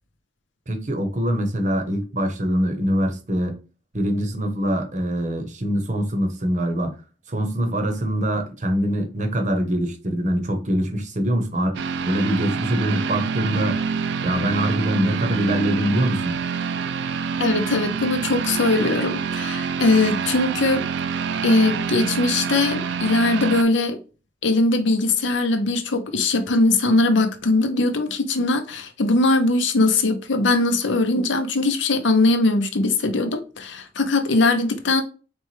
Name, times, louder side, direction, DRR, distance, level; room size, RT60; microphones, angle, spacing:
voice 1, 0.7-3.5 3.9-6.9 7.3-11.8 12.0-13.8 14.2-16.4, equal, 40° right, 0.9 m, -23 dB
sound 1, 11.7-23.6, right 6 dB, 60° right, 0.3 m, -26 dB
voice 2, 17.4-20.8 21.4-24.0 24.4-35.0, left 2 dB, 70° left, 0.7 m, -20 dB
4.3 x 3.3 x 3.1 m
head